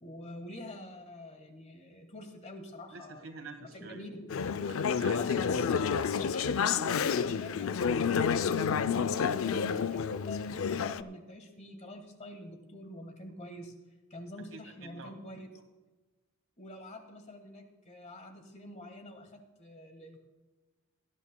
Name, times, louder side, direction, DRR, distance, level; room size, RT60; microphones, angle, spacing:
voice 1, 0.0-3.2 3.7-4.3 5.1-10.4 10.7-13.7 14.1-15.5 16.6-20.2, left 1 dB, 30° left, 5 dB, 1.6 m, -46 dB
voice 2, 2.9-4.1 4.6-5.6 14.5-15.1, right 4 dB, 65° right, 5 dB, 1.8 m, -47 dB
Conversation / Chatter, 4.3-11.0, left 6 dB, 65° left, 0.4 m, -29 dB
19.0 x 11.5 x 2.2 m, 1.2 s
head